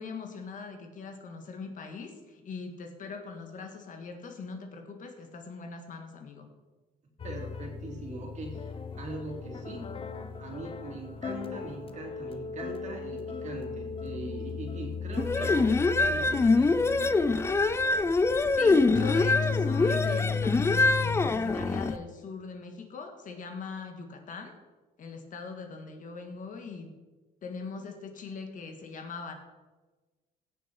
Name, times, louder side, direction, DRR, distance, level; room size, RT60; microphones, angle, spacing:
voice 1, 0.0-6.5 18.0-24.5 25.0-26.9 27.4-29.3, left 4 dB, 50° left, 5 dB, 1.6 m, -41 dB
sound 1, 7.2-21.3, left 5 dB, 35° left, 1.0 m, -36 dB
voice 2, 7.2-9.9 10.4-17.2, right 2 dB, 45° right, 1 dB, 2.9 m, -41 dB
sound 2, 15.2-22.0, left 3 dB, 15° left, 0.4 m, -24 dB
16.0 x 6.7 x 4.4 m, 1.3 s
cardioid pair, 110°, 17 cm